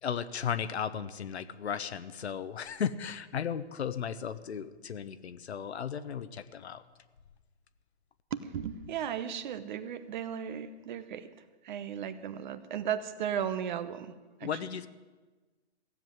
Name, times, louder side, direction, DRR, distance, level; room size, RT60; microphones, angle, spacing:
voice 1, 0.0-6.8 14.4-14.9, left 7 dB, 70° left, 12 dB, 1.1 m, -35 dB
voice 2, 8.3-11.3 11.6-14.1 14.4-14.5, right 9 dB, 45° right, 12 dB, 1.0 m, -35 dB
16.0 x 7.7 x 9.1 m, 1.3 s
hypercardioid pair, 140°, 33 cm